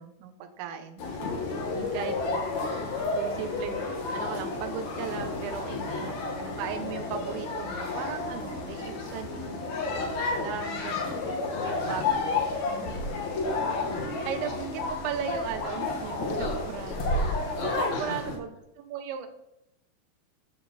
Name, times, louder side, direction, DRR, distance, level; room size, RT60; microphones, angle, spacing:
voice 1, 0.0-1.3 1.8-2.4 3.1-9.7 10.4-12.4 13.0-13.1 14.3-17.2 17.8-18.5 18.8-19.3, right 7 dB, 90° right, 8 dB, 3.8 m, -37 dB
sound 1, 1.0-18.4, left 3 dB, 50° left, 2.4 m, -31 dB
voice 2, 1.2-2.2 5.7-6.3 11.6-12.4 12.8-14.5 16.4-16.7 17.5-18.2, left 3 dB, 30° left, -2 dB, 2.7 m, -41 dB
12.5 x 10.0 x 4.4 m, 0.83 s
omnidirectional pair, 5.6 m